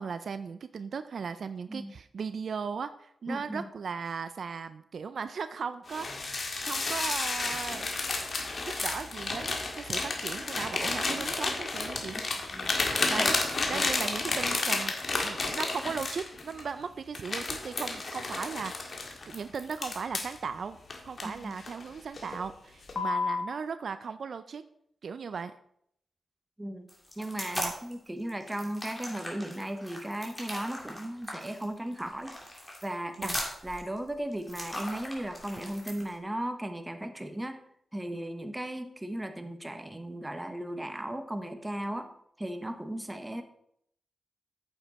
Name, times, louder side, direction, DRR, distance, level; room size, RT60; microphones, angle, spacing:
voice 1, 0.0-7.9 8.8-12.2 13.1-13.4 13.7-14.9 15.2-20.8 21.0-24.6 25.0-25.5 27.5-27.7 33.2-33.4, right 5 dB, 70° right, 12 dB, 0.4 m, -37 dB
voice 2, 3.3-3.6 12.5-12.8 13.2-13.3 13.7-13.9 21.2-21.6 26.6-26.9 27.2-32.4 32.8-33.4 33.6-37.6 37.9-42.1 42.4-43.4, right 1 dB, 15° right, 7 dB, 1.1 m, -36 dB
sound 1, 5.9-16.7 17.1-20.4 20.9-21.8 22.2-22.4 22.9-23.5, left 3 dB, 55° left, 1.8 m, -31 dB
sound 2, 26.9-27.9 28.3-36.1, left 1 dB, 15° left, 3.0 m, -39 dB
8.9 x 7.1 x 4.2 m, 0.70 s
cardioid pair, 65°, 0 cm